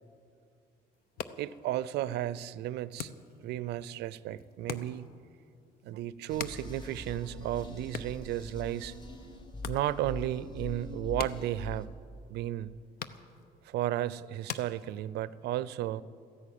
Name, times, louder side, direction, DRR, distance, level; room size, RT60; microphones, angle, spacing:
sound 1, 0.9-15.4, left 8 dB, 65° left, 0.8 m, -47 dB
voice 1, 1.4-3.1 3.4-5.1 5.8-8.9 9.7-11.9 12.3-12.7 13.6-16.0, right 13 dB, 80° right, 18 dB, 0.5 m, -34 dB
sound 2, 6.3-11.8, left 2 dB, 25° left, 1.8 m, -43 dB
14.5 x 11.0 x 8.6 m, 2.4 s
cardioid pair, 110°, 17 cm